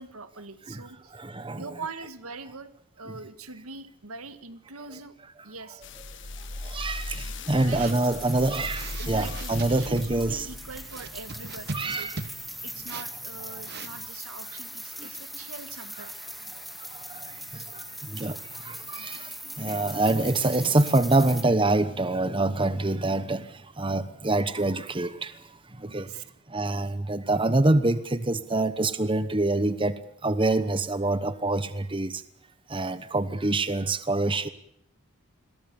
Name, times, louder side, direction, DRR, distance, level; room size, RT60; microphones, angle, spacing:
voice 1, 0.0-1.2 1.5-2.7 3.0-5.2 5.4-5.8 7.6-7.9 9.0-12.1 12.6-16.2 17.7-17.8 25.8-26.2, right 4 dB, 90° right, 1.9 m, -42 dB
voice 2, 1.1-1.6 6.6-10.5 11.7-12.2 15.0-15.1 17.1-17.8 18.1-18.4 18.6-19.3 19.6-23.4 23.8-25.3 25.8-26.1 26.5-29.9 30.2-32.1 32.7-34.5, right 2 dB, 25° right, 1.0 m, -25 dB
sound 1, 5.8-12.3 12.9-13.0, left 2 dB, 55° left, 1.5 m, -38 dB
sound 2, 7.6-14.0, right 3 dB, 50° right, 1.0 m, -41 dB
sound 3, 7.8-21.4, equal, ahead, 2.2 m, -41 dB
28.0 x 22.0 x 7.0 m
head